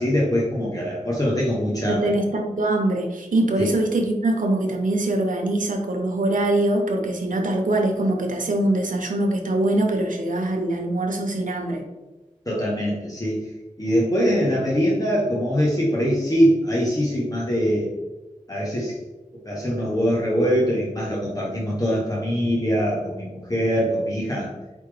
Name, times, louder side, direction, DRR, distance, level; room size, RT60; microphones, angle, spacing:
voice 1, 0.0-2.1 3.6-3.7 12.5-13.4 13.8-17.9 18.5-19.0 19.4-24.5, equal, 25° left, -5 dB, 1.0 m, -23 dB
voice 2, 1.9-11.8, right 1 dB, 80° right, 3 dB, 0.8 m, -23 dB
4.6 x 3.5 x 3.3 m, 1.1 s
wide cardioid pair, 75°, 13 cm